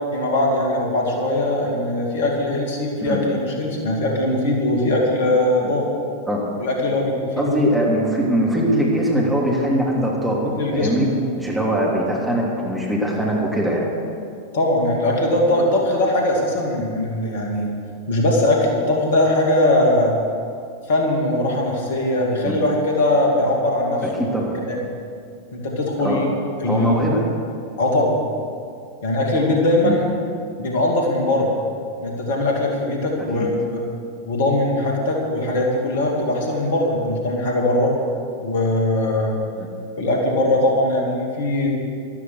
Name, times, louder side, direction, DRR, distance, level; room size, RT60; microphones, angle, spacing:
voice 1, 0.1-5.9 6.6-7.6 10.6-10.9 14.5-17.7 18.1-20.1 20.9-24.3 24.7-24.8 25.5-26.3 26.6-26.9 27.8-28.2 29.0-30.1 30.6-31.5 32.0-33.8 34.2-37.9 38.4-39.4 40.0-41.7, left 1 dB, 55° left, 0 dB, 2.7 m, -20 dB
voice 2, 7.4-11.1 11.3-13.9 22.4-22.6 24.0-24.5 26.0-26.2 26.7-27.3 29.8-30.0 33.4-33.5 39.5-39.7, equal, 5° right, -3 dB, 3.2 m, -21 dB
13.5 x 12.5 x 6.6 m, 2.4 s
figure-of-eight pair, 90°, 0 cm